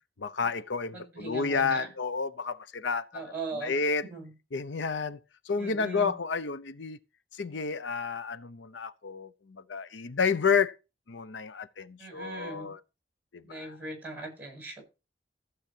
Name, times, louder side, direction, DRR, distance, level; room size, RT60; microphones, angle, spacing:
voice 1, 0.2-3.2 3.6-4.0 4.5-7.0 7.3-10.7 11.1-12.8 13.3-13.7, left 5 dB, 75° left, 0.7 m, -30 dB
voice 2, 0.9-1.9 3.1-4.3 5.6-6.1 12.0-12.7 13.4-14.8, right 3 dB, 10° right, 7.5 m, -40 dB
14.5 x 8.0 x 4.4 m
head